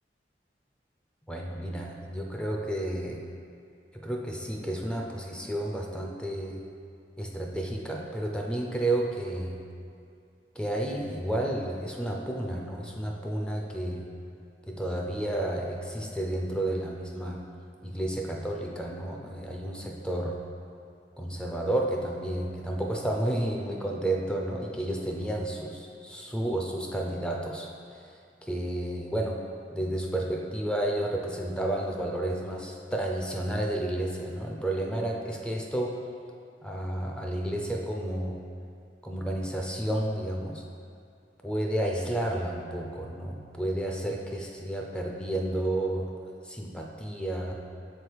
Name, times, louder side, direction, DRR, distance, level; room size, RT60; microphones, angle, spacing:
voice 1, 1.3-3.2 4.0-6.6 7.2-9.5 10.6-14.1 14.7-17.4 17.8-20.4 21.2-28.1 28.4-29.4 29.7-36.0 36.6-38.4 39.0-40.6 41.4-46.1 46.4-47.5, right 1 dB, 5° left, 0 dB, 0.4 m, -31 dB
6.9 x 3.3 x 4.6 m, 2.4 s
head